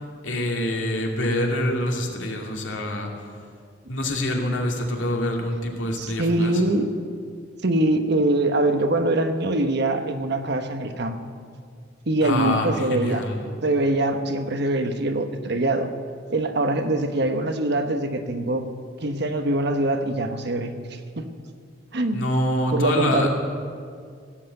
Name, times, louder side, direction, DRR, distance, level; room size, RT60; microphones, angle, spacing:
voice 1, 0.2-3.1 3.9-6.6 12.2-13.4 22.1-23.3, left 1 dB, 80° left, 1 dB, 2.3 m, -25 dB
voice 2, 6.0-6.8 7.6-11.2 12.1-13.3 13.6-15.9 16.3-18.7 19.0-20.7 21.2-21.3 21.9-22.2 22.7-23.3, right 2 dB, 60° right, 7 dB, 1.1 m, -23 dB
17.0 x 8.1 x 7.9 m, 2.2 s
head